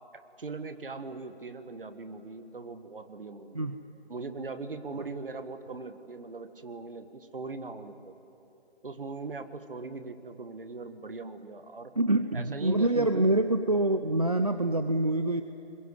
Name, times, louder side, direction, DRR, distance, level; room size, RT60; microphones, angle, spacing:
voice 1, 0.4-3.6 4.1-8.1 8.8-11.9 12.3-13.3, right 3 dB, 55° right, 9 dB, 1.6 m, -40 dB
voice 2, 12.0-15.4, right 2 dB, 35° right, 9 dB, 0.6 m, -26 dB
22.0 x 20.5 x 9.9 m, 2.9 s
figure-of-eight pair, 170°, 33 cm